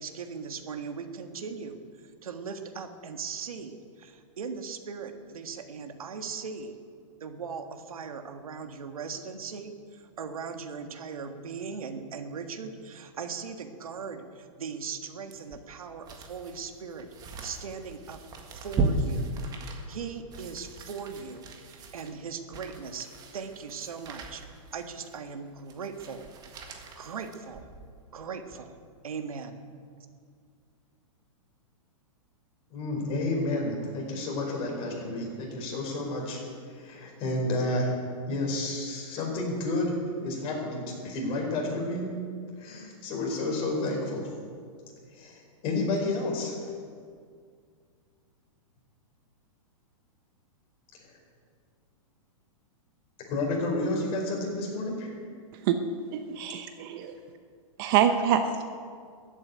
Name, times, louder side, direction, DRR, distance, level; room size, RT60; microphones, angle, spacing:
voice 1, 0.0-6.7 7.2-17.1 17.4-18.2 18.5-19.3 19.9-23.1 23.3-24.4 24.7-26.3 26.9-27.7 28.1-28.8 29.0-29.6, right 5 dB, 90° right, 7 dB, 1.6 m, -39 dB
sound 1, 15.3-28.0 28.4-28.5, right 2 dB, 20° right, 1.7 m, -36 dB
voice 2, 32.7-36.4 36.7-37.9 38.3-42.1 42.6-44.2 45.1-46.7 51.0-51.1 53.3-55.2, left 2 dB, 30° left, -1 dB, 4.9 m, -30 dB
voice 3, 56.1-57.2 57.8-58.6, right 9 dB, 40° right, 8 dB, 0.9 m, -25 dB
14.0 x 8.9 x 9.4 m, 2.1 s
hypercardioid pair, 145°, 18 cm